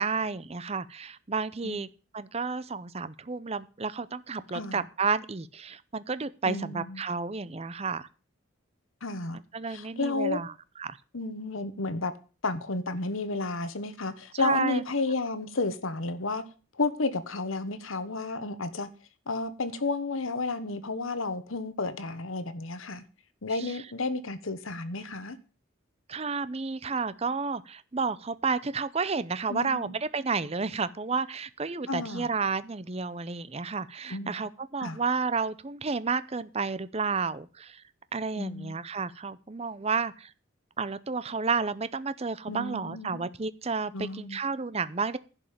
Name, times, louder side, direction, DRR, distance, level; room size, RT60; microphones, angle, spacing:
voice 1, 0.0-1.9 2.1-8.1 9.3-11.0 14.3-14.8 23.5-23.8 26.1-37.8 38.1-40.3 40.8-45.2, right 4 dB, 30° right, 0.6 m, -31 dB
voice 2, 4.5-4.8 6.4-7.0 9.0-9.4 9.7-10.4 11.1-12.1 12.4-16.4 16.8-18.9 19.3-23.0 23.4-25.4 29.5-30.0 31.9-32.3 34.1-34.3 34.8-35.0 38.4-38.7 42.5-43.2 43.9-44.4, left 3 dB, 80° left, 1.2 m, -32 dB
11.0 x 5.4 x 8.8 m
head